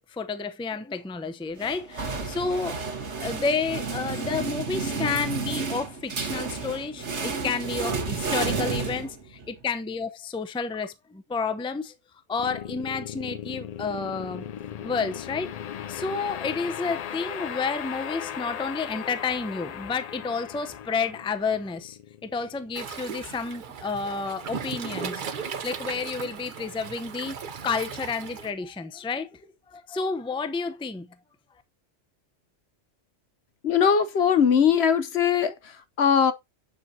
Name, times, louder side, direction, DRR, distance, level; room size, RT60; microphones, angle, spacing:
voice 1, 0.0-11.9 12.3-14.5 14.8-15.5 15.9-27.4 27.6-29.4 29.7-31.1, left 4 dB, 5° left, 0.5 m, -30 dB
sound 1, 1.6-9.5, right 4 dB, 70° right, 1.8 m, -31 dB
sound 2, 12.4-23.6, left 9 dB, 90° left, 0.3 m, -37 dB
Waves surf, 22.7-28.5, right 6 dB, 50° right, 0.8 m, -37 dB
voice 2, 33.6-36.3, left 7 dB, 65° left, 1.0 m, -21 dB
7.3 x 6.5 x 2.7 m
omnidirectional pair, 1.2 m